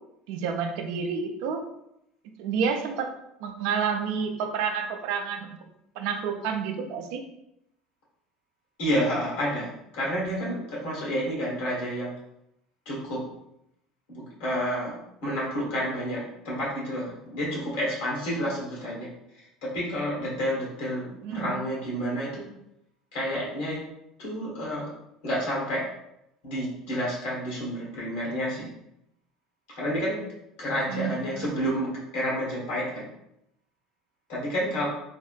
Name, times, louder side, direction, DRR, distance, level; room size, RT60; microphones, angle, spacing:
voice 1, 0.3-1.6 2.4-3.1 3.4-5.6 6.0-7.2 21.2-21.5 30.9-31.5, right 6 dB, 65° right, 5 dB, 0.4 m, -29 dB
voice 2, 8.8-12.1 12.8-13.2 14.1-14.9 15.2-19.1 19.6-22.5 23.1-23.8 24.2-24.9 25.2-25.8 26.4-28.7 29.7-30.2 30.6-33.1 34.3-34.9, equal, 70° left, -5 dB, 1.3 m, -29 dB
3.4 x 2.1 x 2.4 m, 0.81 s
hypercardioid pair, 70°, 0 cm